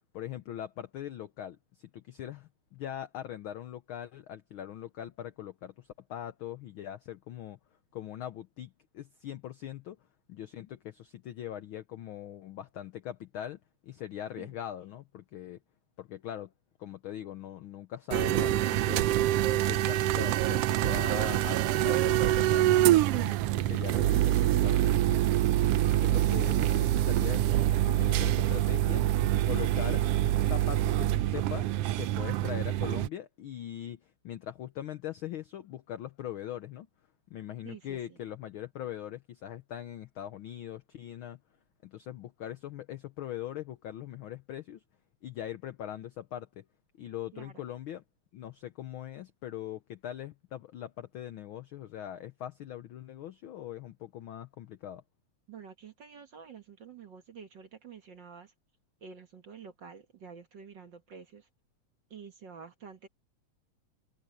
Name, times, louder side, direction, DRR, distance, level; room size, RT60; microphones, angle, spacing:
voice 1, 0.1-7.6 7.9-10.0 10.3-15.6 16.0-16.5 16.8-19.1 19.5-25.4 25.8-27.5 27.9-29.1 29.4-30.0 30.4-36.9 37.3-41.4 41.8-44.8 45.2-46.6 47.0-48.0 48.3-55.0, left 11 dB, 85° left, 1.1 m, -41 dB
sound 1, 18.1-33.1, right 14 dB, 80° right, 1.4 m, -26 dB
voice 2, 37.6-38.2 47.3-47.5 55.5-58.5 59.0-61.5 62.1-63.1, right 6 dB, 50° right, 1.6 m, -49 dB
omnidirectional pair, 3.3 m